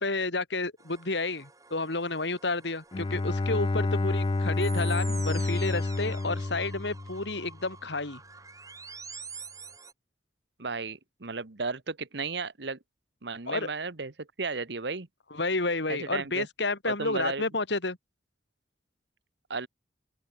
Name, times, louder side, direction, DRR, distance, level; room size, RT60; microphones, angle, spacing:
voice 1, 0.0-8.2 13.5-13.7 15.3-18.0, left 3 dB, 70° left, 2.8 m, -30 dB
sound 1, 0.8-9.9, right 5 dB, 20° right, 3.5 m, -47 dB
Bowed string instrument, 2.9-7.6, left 2 dB, 25° left, 0.4 m, -29 dB
voice 2, 10.6-12.8 13.2-15.1 15.9-16.5 16.9-17.4 19.5-19.7, right 4 dB, 65° right, 1.3 m, -34 dB
open air
head